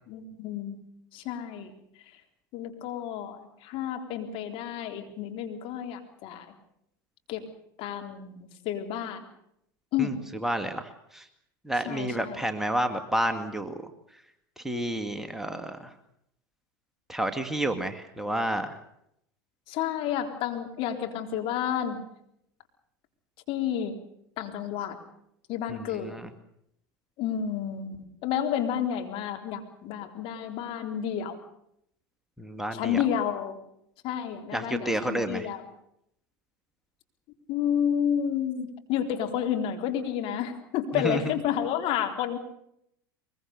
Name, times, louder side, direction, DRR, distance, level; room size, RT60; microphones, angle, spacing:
voice 1, 0.1-0.8 1.1-1.7 2.5-6.5 7.3-7.4 7.8-9.2 9.9-10.2 11.8-12.4 19.7-22.0 23.5-23.9 24.4-25.0 25.5-26.2 27.2-28.0 28.2-31.4 32.7-33.6 34.0-35.6 37.5-42.4, left 9 dB, 55° left, 5 dB, 3.9 m, -30 dB
voice 2, 10.0-11.3 11.6-13.8 14.6-15.9 17.1-18.8 25.7-26.3 32.4-33.0 34.5-35.5 40.9-41.2, right 1 dB, 5° right, 6 dB, 2.2 m, -30 dB
23.0 x 22.0 x 6.7 m, 0.74 s
hypercardioid pair, 85°, 11 cm